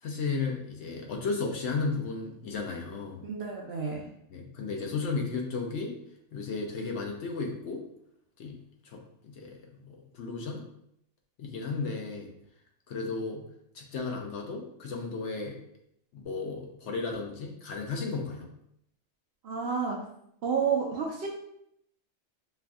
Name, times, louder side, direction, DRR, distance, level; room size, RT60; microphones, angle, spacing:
voice 1, 0.0-3.2 4.3-5.9 6.3-7.8 8.4-8.6 8.8-10.6 11.4-12.3 12.9-13.4 13.7-15.6 16.1-18.5, left 4 dB, 65° left, 2 dB, 0.9 m, -34 dB
voice 2, 3.2-4.1 19.4-20.0 20.4-21.3, right 6 dB, 60° right, -1 dB, 0.7 m, -30 dB
5.4 x 2.5 x 2.3 m, 0.74 s
omnidirectional pair, 1.4 m